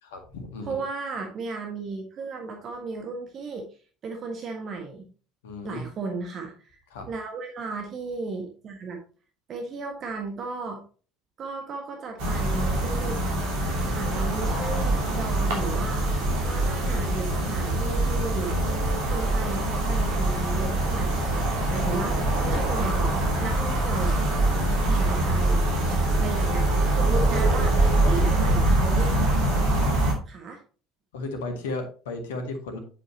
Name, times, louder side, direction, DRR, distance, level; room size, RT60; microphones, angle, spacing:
voice 1, 0.0-0.8 5.4-5.8 6.9-7.1 21.7-21.8 24.6-25.0 28.0-28.9 29.8-29.9 31.1-32.8, left 2 dB, 70° left, 5 dB, 1.9 m, -35 dB
voice 2, 0.7-3.7 4.0-5.1 5.6-6.8 7.1-9.0 9.5-10.8 11.4-13.2 13.9-16.1 16.4-18.6 19.1-21.4 21.7-22.2 22.4-23.1 23.4-24.2 24.8-25.6 26.2-26.6 26.9-27.7 28.1-29.1 30.3-30.6, right 4 dB, 40° right, 3 dB, 1.6 m, -34 dB
sound 1, 12.2-30.1, right 1 dB, 60° right, 2.9 m, -24 dB
8.1 x 7.2 x 2.9 m, 0.37 s
figure-of-eight pair, 60°, 0 cm